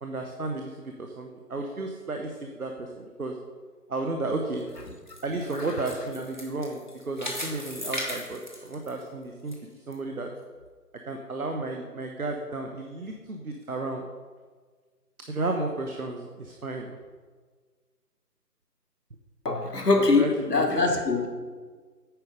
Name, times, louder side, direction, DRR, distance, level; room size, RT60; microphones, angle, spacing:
voice 1, 0.0-3.4 3.9-4.7 5.2-6.8 7.1-10.3 11.1-14.1 15.3-17.0 20.2-20.3 20.6-20.7, right 2 dB, 60° right, 3 dB, 0.9 m, -33 dB
sound 1, 4.6-9.5 9.9-10.0 10.6-10.7, left 1 dB, 30° left, 0.9 m, -37 dB
voice 2, 19.4-21.3, left 3 dB, 75° left, 3 dB, 1.4 m, -23 dB
9.1 x 5.0 x 5.1 m, 1.5 s
figure-of-eight pair, 160°, 48 cm